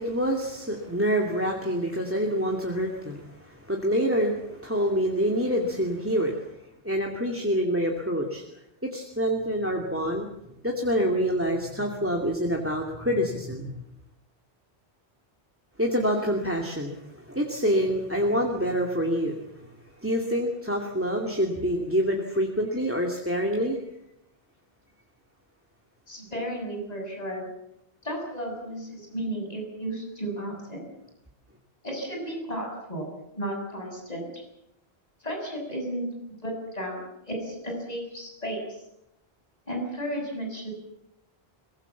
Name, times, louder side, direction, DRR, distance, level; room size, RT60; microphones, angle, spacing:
voice 1, 0.0-6.4 6.8-8.4 8.9-10.3 10.6-13.7 15.8-19.6 20.0-23.8, equal, 10° right, 1 dB, 2.4 m, -26 dB
voice 2, 26.1-27.5 28.0-30.9 31.8-34.3 35.2-38.8 39.7-40.7, right 1 dB, 40° left, 1 dB, 7.2 m, -34 dB
23.0 x 21.5 x 7.3 m, 0.82 s
omnidirectional pair, 1.1 m